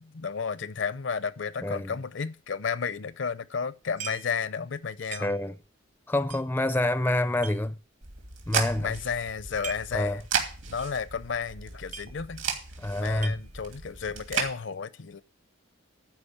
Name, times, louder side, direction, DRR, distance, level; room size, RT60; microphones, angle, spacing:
voice 1, 0.0-5.3 8.8-10.2 10.7-12.4 12.9-15.2, left 6 dB, 60° left, 0.6 m, -32 dB
voice 2, 1.6-1.9 5.2-5.6 6.1-7.8 8.5-8.9 9.9-10.2 12.8-13.4, left 1 dB, 10° left, 0.4 m, -27 dB
sound 1, 4.0-4.4 4.7-4.8 5.1-5.7 6.3-7.6 8.1-8.2 8.5-8.9 9.4-10.0 10.3-10.4 10.8-11.0 11.3-11.4 11.6-12.5 12.8-13.8, right 7 dB, 35° right, 0.7 m, -42 dB
sound 2, 8.0-14.5, right 6 dB, 70° right, 2.7 m, -34 dB
12.0 x 5.0 x 8.6 m
head